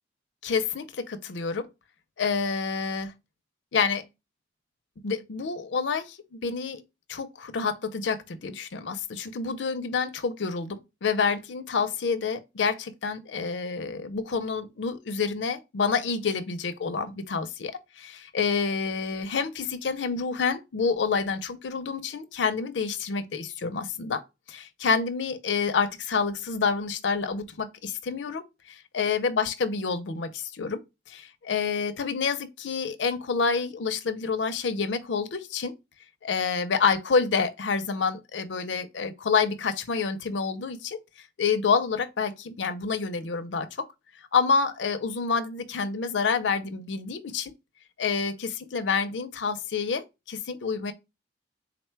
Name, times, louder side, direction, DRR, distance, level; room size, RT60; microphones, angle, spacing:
voice 1, 0.4-1.7 2.2-3.1 3.7-4.1 5.0-6.8 7.1-24.2 24.5-30.8 31.1-35.7 36.2-41.0 41.4-43.9 44.3-47.5 48.0-50.9, left 5 dB, 85° left, 0.5 m, -28 dB
3.9 x 2.2 x 4.4 m
head